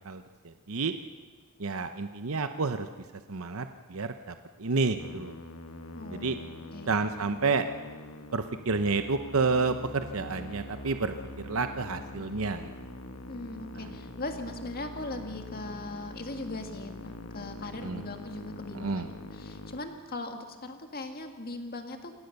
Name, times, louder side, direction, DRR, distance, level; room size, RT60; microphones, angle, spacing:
voice 1, 0.0-0.9 1.6-2.9 3.3-5.3 6.1-6.4 6.9-7.7 8.3-11.1 11.4-12.7 13.8-13.9 17.8-18.0 18.7-19.1, right 4 dB, 65° right, 8 dB, 0.8 m, -30 dB
Musical instrument, 5.0-19.8, left 2 dB, 70° left, 1.4 m, -44 dB
voice 2, 5.9-7.1 13.3-22.1, left 2 dB, 45° left, 5 dB, 2.0 m, -40 dB
26.5 x 17.0 x 6.7 m, 1.4 s
head